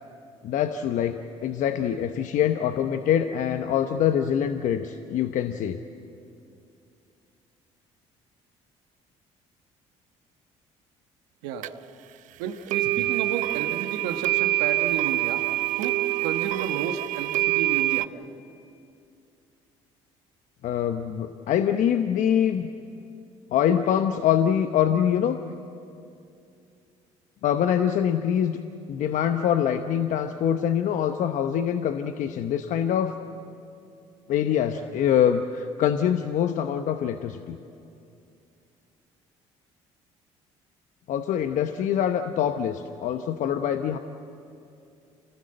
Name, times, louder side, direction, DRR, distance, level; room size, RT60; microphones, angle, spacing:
voice 1, 0.4-5.8 13.0-13.1 20.6-22.7 23.5-25.4 27.4-28.6 28.9-33.1 34.3-37.6 41.1-44.0, left 9 dB, 65° left, 8 dB, 0.9 m, -24 dB
sound 1, 11.6-11.7 12.7-18.1, right 17 dB, 65° right, 0.5 m, -25 dB
voice 2, 12.4-15.4 15.8-16.0 16.2-18.1, right 8 dB, 85° right, 5 dB, 1.3 m, -32 dB
27.0 x 18.5 x 7.8 m, 2.6 s
supercardioid pair, 70°, 14 cm